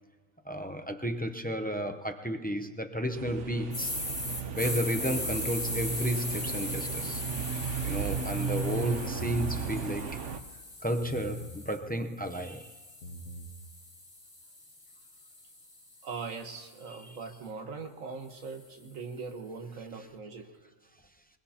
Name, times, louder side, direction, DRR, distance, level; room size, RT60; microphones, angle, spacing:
voice 1, 0.4-4.0 4.6-7.2 7.8-10.2 10.8-12.7 16.9-17.2, equal, 10° left, 0.4 m, -33 dB
sound 1, 3.1-10.4, right 6 dB, 65° right, 1.2 m, -35 dB
sound 2, 3.7-11.8 12.3-16.5, left 2 dB, 50° left, 2.8 m, -39 dB
sound 3, 7.0-7.5 8.9-9.5 11.0-11.6 12.9-13.5, equal, 65° left, 2.0 m, -44 dB
voice 2, 16.0-20.5, right 4 dB, 85° right, 1.7 m, -41 dB
23.0 x 21.0 x 2.9 m
omnidirectional pair, 1.4 m